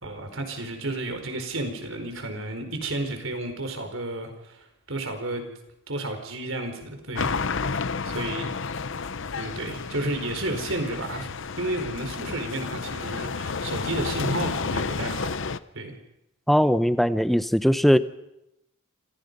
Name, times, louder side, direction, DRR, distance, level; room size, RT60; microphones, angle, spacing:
voice 1, 0.0-5.5 5.9-7.4 8.0-8.5 9.4-11.3 11.6-15.3 15.7-16.0, right 2 dB, 65° right, 6 dB, 4.7 m, -32 dB
sound 1, 7.1-15.6, left 4 dB, 60° left, 0.8 m, -31 dB
voice 2, 16.5-18.0, equal, ahead, 12 dB, 0.8 m, -20 dB
27.5 x 27.0 x 5.5 m, 0.85 s
head